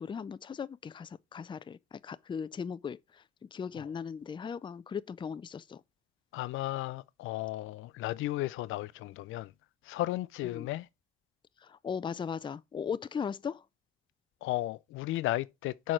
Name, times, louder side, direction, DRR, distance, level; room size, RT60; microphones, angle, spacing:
voice 1, 0.0-5.8 10.5-10.7 11.6-13.7, left 6 dB, 25° left, 0.4 m, -38 dB
voice 2, 6.3-9.5 9.8-10.9 14.4-15.9, left 16 dB, 85° left, 0.4 m, -34 dB
6.3 x 4.5 x 4.8 m
cardioid pair, 90°, 20 cm